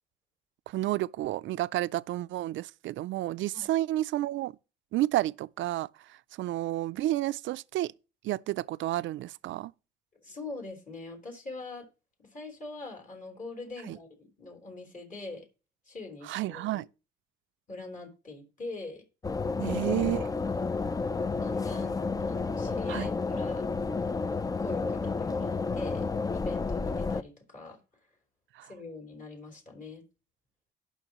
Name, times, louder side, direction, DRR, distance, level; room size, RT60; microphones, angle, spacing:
voice 1, 0.7-4.5 4.9-7.9 8.2-9.7 13.9-14.0 16.2-16.9 19.6-20.3 22.9-23.1 28.5-28.7, right 15 dB, 75° right, 0.4 m, -31 dB
voice 2, 10.2-11.9 12.2-15.4 15.9-16.8 17.7-19.1 19.6-19.9 20.4-20.6 21.4-23.6 24.6-27.8 28.6-30.0, left 3 dB, 40° left, 4.0 m, -43 dB
sound 1, 19.2-27.2, left 4 dB, 20° left, 0.4 m, -31 dB
18.0 x 6.2 x 3.0 m
cardioid pair, 90°, 20 cm